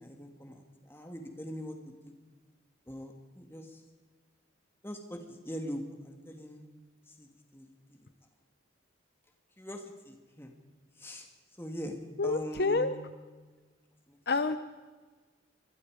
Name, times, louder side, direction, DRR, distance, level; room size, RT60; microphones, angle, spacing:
voice 1, 0.0-2.1 2.9-3.8 4.8-6.7 7.1-8.0 9.6-10.6 11.0-12.9 14.1-14.2, equal, 10° left, 3 dB, 2.4 m, -43 dB
voice 2, 12.2-12.9 14.3-14.6, left 3 dB, 55° left, 10 dB, 0.8 m, -28 dB
25.5 x 20.5 x 5.1 m, 1.4 s
head